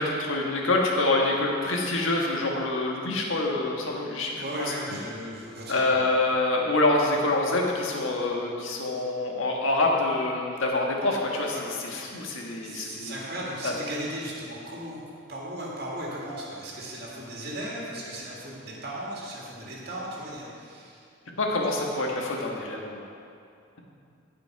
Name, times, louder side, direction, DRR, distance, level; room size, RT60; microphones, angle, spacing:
voice 1, 0.0-4.7 5.7-13.1 13.6-13.7 21.4-23.1, left 2 dB, 75° left, -1 dB, 1.5 m, -26 dB
voice 2, 4.3-6.1 11.5-11.6 12.6-15.0 15.3-21.0, right 1 dB, 50° right, -5 dB, 1.9 m, -36 dB
15.5 x 5.2 x 4.6 m, 2.4 s
head